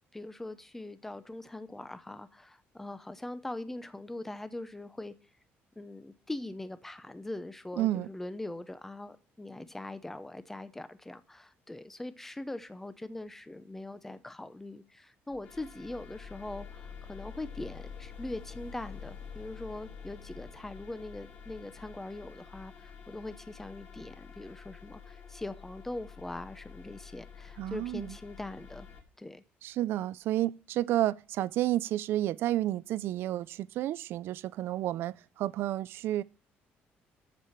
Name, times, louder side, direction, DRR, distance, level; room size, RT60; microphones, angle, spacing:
voice 1, 0.1-5.1 5.8-28.9 29.2-29.4, left 2 dB, 5° left, 0.7 m, -42 dB
voice 2, 7.8-8.1 27.6-28.2 29.6-36.2, right 14 dB, 65° right, 0.4 m, -31 dB
sound 1, 15.3-29.0, left 6 dB, 50° left, 2.2 m, -48 dB
14.0 x 5.0 x 5.7 m
cardioid pair, 155°, 4 cm